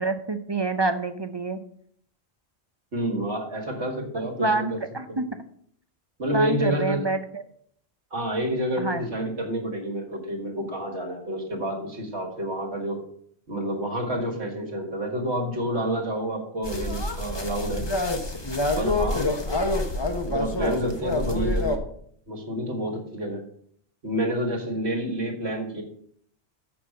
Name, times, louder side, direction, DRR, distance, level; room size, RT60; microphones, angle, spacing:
voice 1, 0.0-1.6 4.4-5.2 6.3-7.4 8.8-9.1, right 3 dB, 35° right, 9 dB, 0.4 m, -27 dB
voice 2, 2.9-4.8 5.1-5.2 6.2-7.1 8.1-13.0 13.5-17.9 18.8-19.6 20.3-21.8 22.3-23.4 24.0-25.8, right 1 dB, 80° right, 0 dB, 1.9 m, -29 dB
sound 1, 16.6-21.8, left 2 dB, 25° left, 1.0 m, -27 dB
7.0 x 6.0 x 7.4 m, 0.65 s
omnidirectional pair, 1.1 m